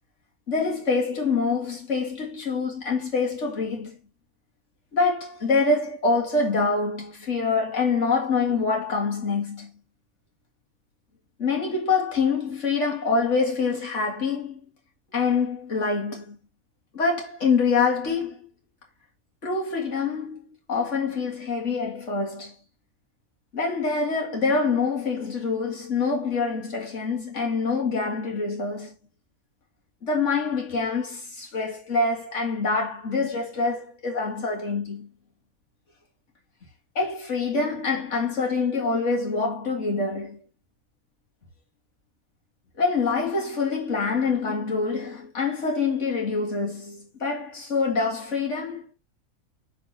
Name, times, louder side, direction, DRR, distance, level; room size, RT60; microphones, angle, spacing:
voice 1, 0.5-4.0 4.9-9.7 11.4-14.6 15.1-16.4 16.9-18.5 19.4-20.4 20.7-22.5 23.5-28.9 30.0-35.1 37.0-40.4 42.8-48.8, left 4 dB, 60° left, 2.3 m, -25 dB
6.3 x 4.2 x 4.1 m
omnidirectional pair, 1.4 m